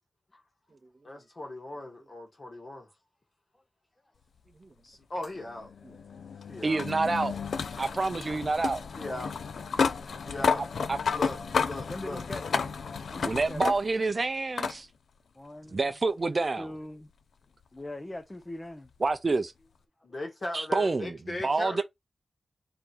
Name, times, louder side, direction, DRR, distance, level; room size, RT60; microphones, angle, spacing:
voice 1, 1.0-2.9 4.8-5.7 6.5-6.8 9.0-9.3 10.2-10.6 11.1-12.2 20.0-21.8, left 1 dB, 35° left, 1.6 m, -38 dB
sound 1, 5.2-14.1 14.6-14.8 16.1-16.2 19.1-19.2, left 5 dB, 80° left, 0.5 m, -32 dB
voice 2, 6.6-7.3 7.8-8.9 10.9-11.0 13.2-14.9 15.7-16.7 19.0-19.5 20.5-21.2 21.4-21.8, right 3 dB, 35° right, 0.5 m, -27 dB
voice 3, 7.7-8.4 11.9-12.7 13.1-13.6 15.3-15.9 16.6-17.1 17.7-18.9, left 1 dB, 15° left, 0.6 m, -42 dB
3.8 x 3.1 x 4.3 m
wide cardioid pair, 170°, 0 cm